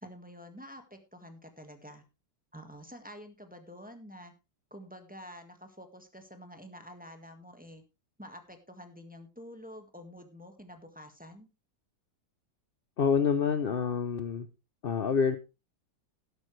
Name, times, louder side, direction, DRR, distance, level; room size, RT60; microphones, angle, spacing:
voice 1, 0.0-2.0 2.5-4.3 4.7-7.8 8.2-11.5, equal, 5° right, 5 dB, 1.5 m, -48 dB
voice 2, 13.0-14.5 14.8-15.4, left 6 dB, 55° left, 10 dB, 0.6 m, -27 dB
12.0 x 11.5 x 3.2 m, 0.27 s
omnidirectional pair, 1.9 m